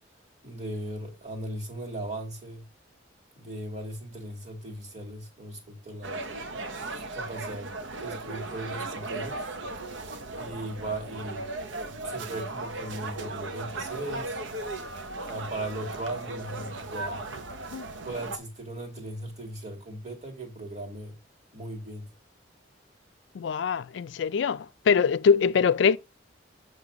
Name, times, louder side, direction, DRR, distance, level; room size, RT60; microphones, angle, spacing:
voice 1, 0.4-2.6 3.4-6.2 7.1-7.7 8.0-9.4 10.4-11.4 11.8-14.4 15.3-17.2 18.0-21.2 21.5-22.1, right 1 dB, 40° right, 2.1 m, -37 dB
sound 1, 6.0-18.4, right 2 dB, 85° right, 0.9 m, -37 dB
voice 2, 23.3-26.0, left 6 dB, 70° left, 0.4 m, -23 dB
7.6 x 3.2 x 5.0 m
head